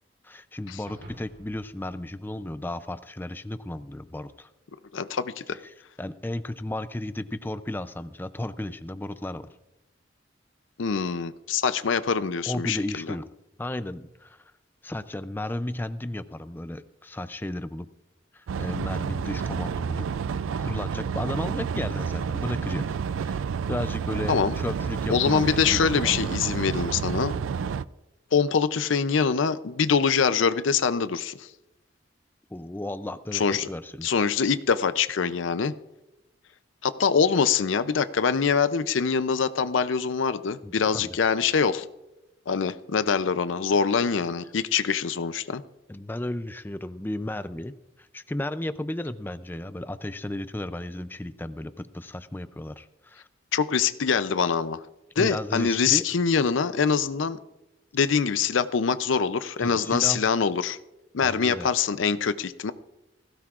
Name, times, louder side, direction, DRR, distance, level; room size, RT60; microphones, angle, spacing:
voice 1, 0.2-4.5 5.6-9.5 12.5-13.3 13.6-14.4 14.8-17.9 18.3-20.1 20.6-26.2 32.5-34.1 40.6-41.2 45.9-53.3 55.2-56.1 59.6-60.2 61.2-61.7, left 1 dB, 10° left, 12 dB, 0.4 m, -34 dB
sound 1, 0.9-3.3, equal, 65° right, 3.5 m, -50 dB
voice 2, 4.9-5.6 10.8-13.1 24.3-24.5 25.1-27.3 28.3-31.5 33.3-33.7 34.0-35.7 36.8-41.9 42.5-45.6 53.5-54.8 55.2-57.4 57.9-60.8 61.1-62.7, left 6 dB, 80° left, 13 dB, 0.5 m, -24 dB
sound 2, 18.5-27.8, right 6 dB, 85° right, 0.4 m, -30 dB
19.5 x 16.5 x 2.5 m, 0.97 s
head